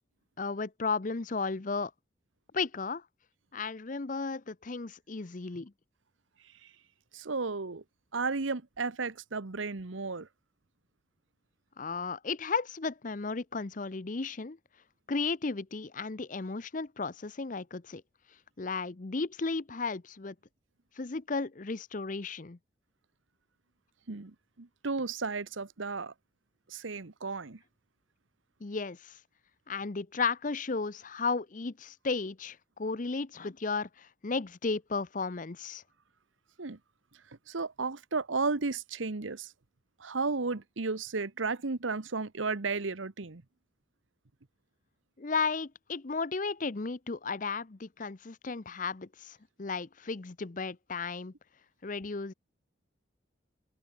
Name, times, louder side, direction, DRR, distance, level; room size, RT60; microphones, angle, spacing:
voice 1, 0.4-1.9 2.5-3.0 3.5-5.7 11.8-14.6 15.1-18.0 18.6-20.3 21.0-22.6 28.6-29.2 29.7-35.8 45.2-51.3 51.8-52.3, left 4 dB, 40° left, 0.7 m, -34 dB
voice 2, 7.1-7.8 8.1-10.3 24.1-26.1 26.7-27.6 36.6-36.8 37.3-39.5 40.0-43.4, right 4 dB, 85° right, 1.1 m, -34 dB
head